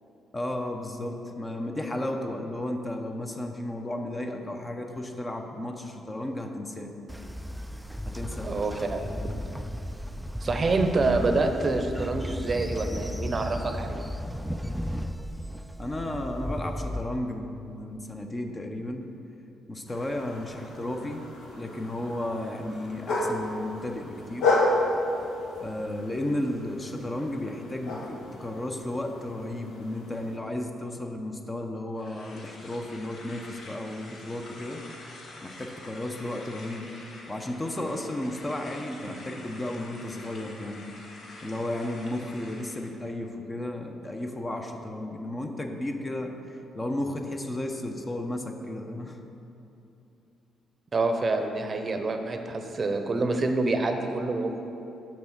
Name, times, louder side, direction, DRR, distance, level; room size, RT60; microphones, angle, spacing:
voice 1, 0.3-6.9 8.1-8.9 15.8-19.1 19.7-24.5 25.6-34.8 35.4-37.0 37.3-40.9 41.4-49.2, left 1 dB, 20° left, 4 dB, 0.8 m, -34 dB
Train, 7.1-17.1, equal, 5° right, 0.3 m, -35 dB
voice 2, 8.4-9.1 10.4-14.0 50.9-54.6, right 3 dB, 35° right, 5 dB, 0.7 m, -27 dB
sound 1, 19.9-30.4, left 2 dB, 80° left, 1.3 m, -32 dB
sound 2, 32.0-42.9, left 2 dB, 60° left, 1.5 m, -47 dB
7.3 x 6.0 x 5.9 m, 2.8 s
cardioid pair, 90°, 0 cm